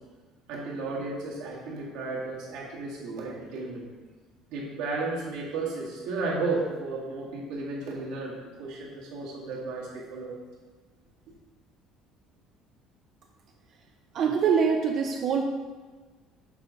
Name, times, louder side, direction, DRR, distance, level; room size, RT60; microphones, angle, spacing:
voice 1, 0.5-3.9 4.5-10.4, right 3 dB, 70° right, -4 dB, 1.9 m, -33 dB
voice 2, 14.1-15.4, right 6 dB, 35° right, 3 dB, 0.4 m, -24 dB
7.2 x 4.1 x 5.1 m, 1.4 s
cardioid pair, 180°, 0 cm